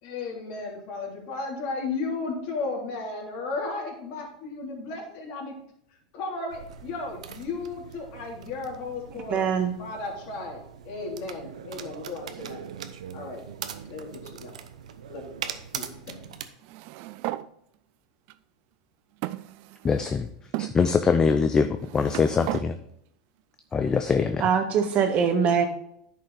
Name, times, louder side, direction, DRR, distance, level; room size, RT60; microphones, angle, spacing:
voice 1, 0.0-5.5 6.1-9.4 9.8-12.6 13.1-13.4 13.9-14.5 15.1-15.2 15.7-16.2, left 3 dB, 55° left, -2 dB, 3.1 m, -34 dB
sound 1, 6.5-16.4, right 8 dB, 90° right, 0.8 m, -41 dB
voice 2, 9.3-9.7 24.4-25.7, right 7 dB, 40° right, 5 dB, 1.5 m, -22 dB
sound 2, 16.6-17.5 18.3-18.4 19.2-20.0 20.5-20.7 21.6-22.7, right 17 dB, 55° right, 0.4 m, -34 dB
voice 3, 19.8-20.3 20.6-21.7 21.9-22.8 23.7-24.4, left 5 dB, 20° left, 8 dB, 0.5 m, -23 dB
10.0 x 5.6 x 4.1 m, 0.73 s
supercardioid pair, 120°, 4 cm